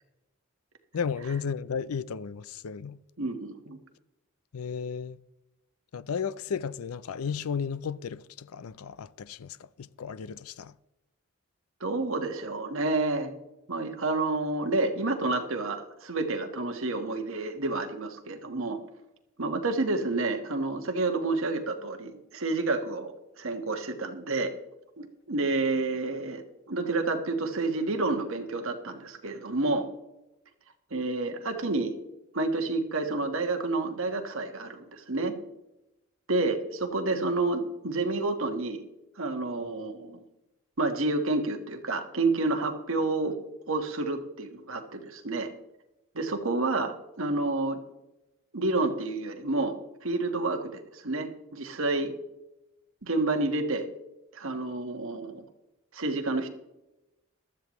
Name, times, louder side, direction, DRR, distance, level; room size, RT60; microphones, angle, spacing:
voice 1, 0.9-3.0 4.5-5.2 5.9-10.7, left 6 dB, 85° left, 0.5 m, -34 dB
voice 2, 3.2-3.8 11.8-13.3 13.7-18.8 19.4-24.5 25.0-29.9 30.9-32.0 32.3-35.4 36.3-38.8 39.2-40.2 40.8-43.4 43.7-45.5 46.1-47.8 48.5-49.7 50.0-52.1 53.0-53.9 54.3-55.4 55.9-56.5, right 2 dB, 70° right, 1.4 m, -29 dB
15.0 x 12.5 x 3.1 m
head